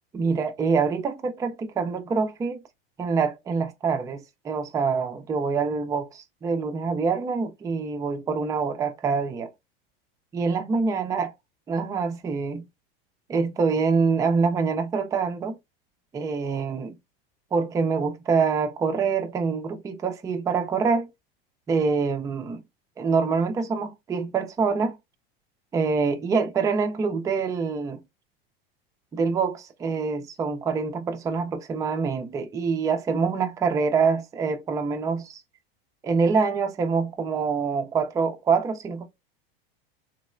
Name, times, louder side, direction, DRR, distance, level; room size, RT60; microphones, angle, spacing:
voice 1, 0.1-2.6 3.0-9.5 10.3-11.3 11.7-12.6 13.3-15.6 16.1-17.0 17.5-21.1 21.7-22.6 23.0-25.0 25.7-28.0 29.1-35.4 36.0-39.1, right 5 dB, 10° right, 0.3 m, -25 dB
3.1 x 2.0 x 2.4 m
hypercardioid pair, 100°, 29 cm